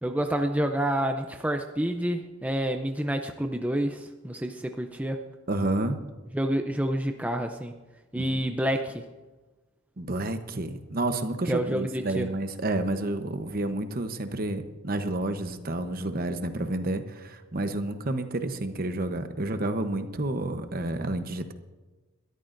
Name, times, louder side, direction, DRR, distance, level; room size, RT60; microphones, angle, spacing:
voice 1, 0.0-5.2 6.3-7.7 8.1-9.1 11.4-12.3, right 1 dB, 5° right, 5 dB, 0.5 m, -28 dB
voice 2, 5.5-6.0 8.1-8.2 10.0-21.5, right 2 dB, 45° right, 8 dB, 0.9 m, -30 dB
21.5 x 13.0 x 2.6 m, 1.2 s
head